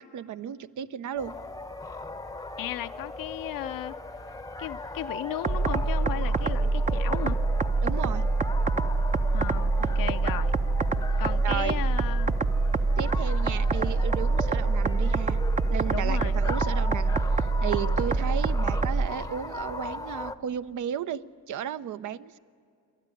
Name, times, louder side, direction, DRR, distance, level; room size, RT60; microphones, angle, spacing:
voice 1, 0.0-1.3 7.8-8.3 11.4-11.8 13.0-15.4 15.7-21.2 21.5-22.4, right 9 dB, 55° right, 14 dB, 0.7 m, -34 dB
sound 1, 1.2-20.3, left 3 dB, 10° left, 0.8 m, -39 dB
voice 2, 2.6-4.0 4.6-7.4 9.3-10.5 11.2-12.3 15.9-16.4, left 13 dB, 65° left, 11 dB, 0.7 m, -35 dB
sound 2, 5.4-19.1, right 3 dB, 20° right, 0.7 m, -25 dB
28.0 x 12.0 x 9.9 m, 2.3 s
cardioid pair, 115°, 37 cm